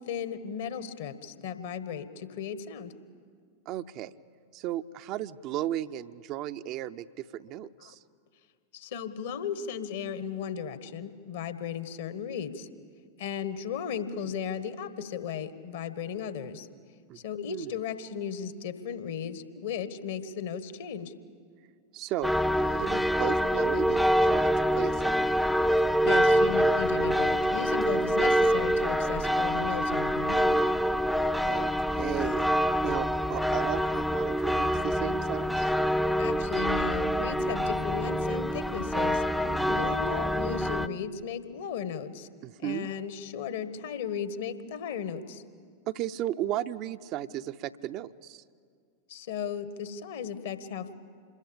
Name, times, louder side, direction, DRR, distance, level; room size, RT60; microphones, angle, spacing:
voice 1, 0.0-2.9 7.8-7.9 8.7-12.7 13.2-16.7 17.1-21.1 25.8-30.7 36.2-39.2 39.7-42.3 42.6-45.4 49.1-50.9, left 7 dB, 55° left, 12 dB, 1.4 m, -36 dB
voice 2, 3.7-4.2 4.5-8.0 14.1-14.3 17.1-17.2 17.5-17.7 21.9-25.3 31.4-32.5 32.8-35.7 39.5-39.9 42.4-42.9 45.9-48.4, right 12 dB, 40° right, 11 dB, 0.6 m, -35 dB
sound 1, 22.2-40.9, equal, ahead, 0.6 m, -26 dB
27.0 x 21.5 x 8.6 m, 2.1 s
figure-of-eight pair, 90°, 0 cm